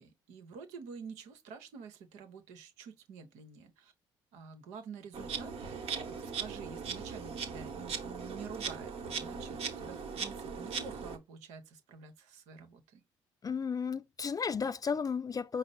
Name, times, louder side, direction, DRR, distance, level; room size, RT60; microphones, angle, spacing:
voice 1, 0.0-3.9 4.3-13.0, right 6 dB, 75° right, 1.0 m, -49 dB
Insect, 5.1-11.2, right 6 dB, 55° right, 1.2 m, -39 dB
voice 2, 13.4-15.6, left 6 dB, 30° left, 0.4 m, -33 dB
5.0 x 2.0 x 4.1 m
hypercardioid pair, 55°, 12 cm